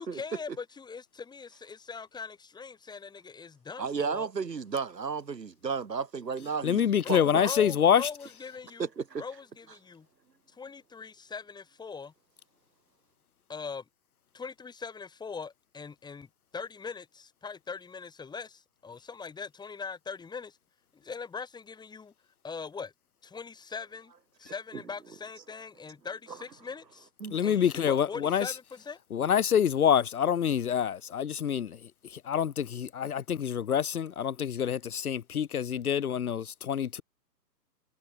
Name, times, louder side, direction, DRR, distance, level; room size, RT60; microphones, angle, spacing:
voice 1, 0.0-4.3 7.0-8.9 9.2-10.1 10.5-12.1 13.5-13.8 14.3-20.6 20.9-22.1 22.4-22.9 23.2-24.1 24.4-27.1 27.4-29.0, left 5 dB, 10° left, 5.4 m, -41 dB
voice 2, 3.8-6.8 7.1-7.5 8.8-9.2 27.2-27.4, right 5 dB, 75° right, 6.5 m, -33 dB
voice 3, 6.6-8.1 27.3-28.5 29.1-37.0, left 8 dB, 60° left, 3.1 m, -27 dB
figure-of-eight pair, 135°, 49 cm